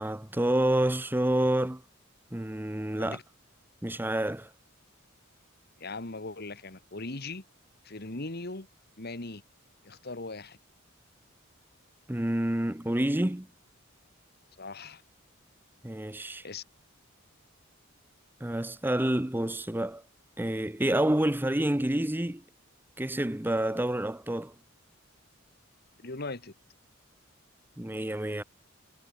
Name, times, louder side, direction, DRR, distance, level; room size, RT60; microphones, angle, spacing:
voice 1, 0.0-1.8 2.3-3.2 3.8-4.5 12.1-13.5 15.8-16.4 18.4-20.0 20.4-22.4 23.0-24.5 27.8-28.4, right 1 dB, 10° right, 0.8 m, -28 dB
voice 2, 5.8-7.4 7.8-8.7 9.0-9.4 9.8-10.6 14.6-15.0 16.4-16.6 26.0-26.5, left 3 dB, 50° left, 1.9 m, -39 dB
head